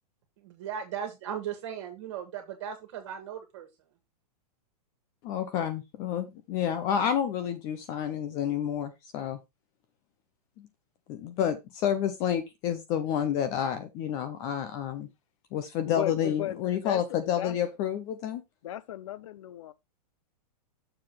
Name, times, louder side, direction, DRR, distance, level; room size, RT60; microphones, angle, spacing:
voice 1, 0.4-3.7, right 8 dB, 45° right, 1.8 m, -37 dB
voice 2, 5.2-9.4 10.6-10.7 11.1-15.1 15.5-18.4, left 9 dB, 15° left, 0.4 m, -29 dB
voice 3, 15.8-17.6 18.6-19.7, left 12 dB, 50° left, 0.6 m, -36 dB
6.8 x 3.7 x 6.0 m
supercardioid pair, 170°, 20 cm